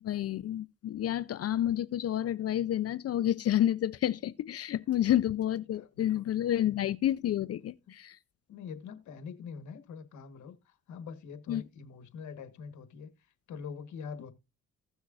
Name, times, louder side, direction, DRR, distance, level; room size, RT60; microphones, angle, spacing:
voice 1, 0.0-8.2 11.5-11.6, left 12 dB, 55° left, 0.5 m, -29 dB
voice 2, 5.7-6.3 8.5-13.1 13.5-14.3, left 6 dB, 70° left, 1.4 m, -44 dB
16.0 x 6.3 x 2.4 m
cardioid pair, 90°, 30 cm